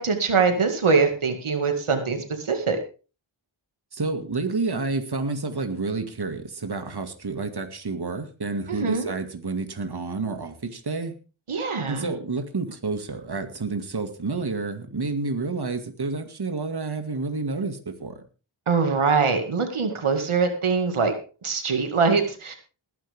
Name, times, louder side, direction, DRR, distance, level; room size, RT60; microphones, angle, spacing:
voice 1, 0.0-2.8 8.7-9.1 11.5-12.1 18.7-21.1 21.4-22.6, right 5 dB, 85° right, 5 dB, 2.2 m, -23 dB
voice 2, 3.9-11.1 11.9-18.2, right 3 dB, 50° right, 6 dB, 2.2 m, -29 dB
19.5 x 10.5 x 3.6 m, 0.36 s
wide cardioid pair, 50°, 48 cm